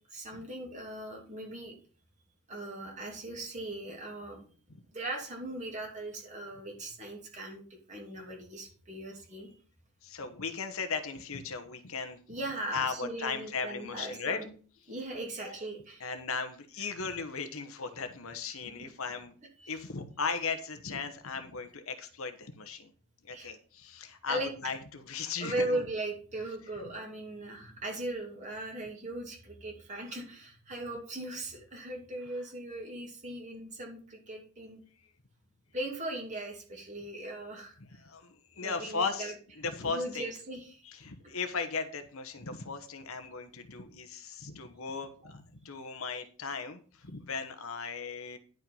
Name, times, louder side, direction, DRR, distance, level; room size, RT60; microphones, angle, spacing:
voice 1, 0.1-1.7 2.5-4.5 4.9-7.6 7.9-9.5 12.3-14.5 14.9-16.1 18.6-18.7 19.6-19.7 23.3-23.5 24.3-24.7 25.4-34.8 35.7-37.8 38.6-39.3 39.8-40.8 45.7-45.8, right 1 dB, 35° right, 0 dB, 2.7 m, -38 dB
voice 2, 10.0-12.2 12.7-14.4 16.0-19.3 19.7-22.9 23.2-25.8 38.0-40.3 40.8-48.4, left 5 dB, 65° left, 8 dB, 1.1 m, -37 dB
10.5 x 5.4 x 5.5 m, 0.40 s
head